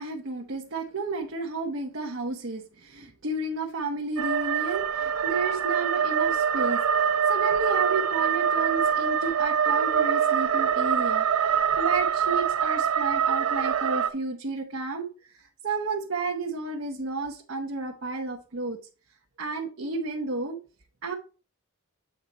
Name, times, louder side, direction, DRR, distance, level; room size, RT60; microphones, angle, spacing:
voice 1, 0.0-18.8 19.4-20.6 21.0-21.1, right 3 dB, 60° right, 1 dB, 0.9 m, -32 dB
sound 1, 4.2-14.1, right 7 dB, 75° right, 0.6 m, -24 dB
8.1 x 4.3 x 4.1 m, 0.35 s
head